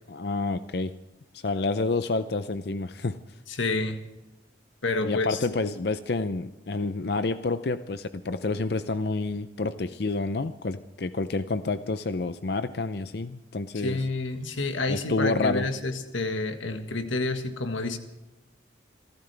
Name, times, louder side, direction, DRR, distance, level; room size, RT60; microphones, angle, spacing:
voice 1, 0.1-0.9 1.3-3.2 5.0-14.0 14.9-15.7, left 3 dB, 55° left, 12 dB, 0.6 m, -29 dB
voice 2, 3.5-4.0 4.8-5.4 13.7-18.0, left 3 dB, 90° left, 7 dB, 1.6 m, -29 dB
27.5 x 14.0 x 3.4 m, 1.0 s
head